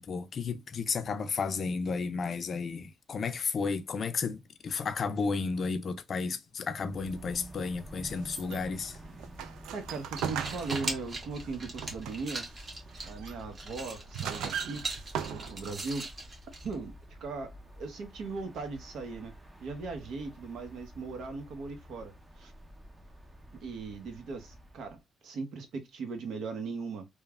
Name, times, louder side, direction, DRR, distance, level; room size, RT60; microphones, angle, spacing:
voice 1, 0.0-9.0, left 5 dB, 50° left, 0.4 m, -33 dB
sound 1, 6.7-25.0, right 1 dB, 20° right, 0.5 m, -50 dB
sound 2, 8.2-12.4 12.9-13.4 13.9-15.9, right 8 dB, 90° right, 0.3 m, -38 dB
voice 2, 9.7-12.5 13.0-14.9 15.3-16.1 16.6-19.3 19.6-22.5 23.5-27.1, right 4 dB, 75° right, 0.8 m, -39 dB
sound 3, 10.1-17.0, right 2 dB, 35° right, 1.1 m, -41 dB
3.1 x 2.1 x 2.2 m
cardioid pair, 90°, 0 cm